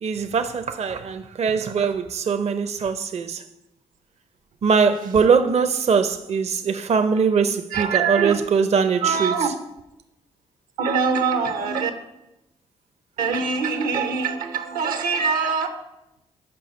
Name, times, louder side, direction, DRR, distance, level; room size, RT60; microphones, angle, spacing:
voice 1, 0.0-3.4 4.6-9.5, right 5 dB, 50° right, 0.6 m, -21 dB
voice 2, 7.7-8.4 9.0-9.6 10.8-12.0 13.2-15.7, right 5 dB, 80° right, 0.9 m, -23 dB
6.8 x 5.4 x 5.3 m
supercardioid pair, 50°, 14 cm